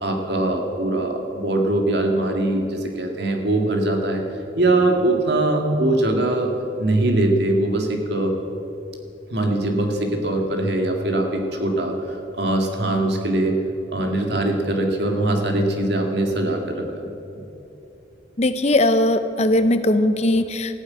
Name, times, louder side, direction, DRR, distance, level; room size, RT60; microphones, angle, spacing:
voice 1, 0.0-4.2 4.6-6.5 6.8-8.3 9.3-13.6 13.9-17.1, right 2 dB, 60° right, 3 dB, 1.9 m, -22 dB
voice 2, 18.4-20.8, left 1 dB, 35° left, 11 dB, 0.6 m, -19 dB
14.5 x 9.5 x 8.5 m, 2.9 s
head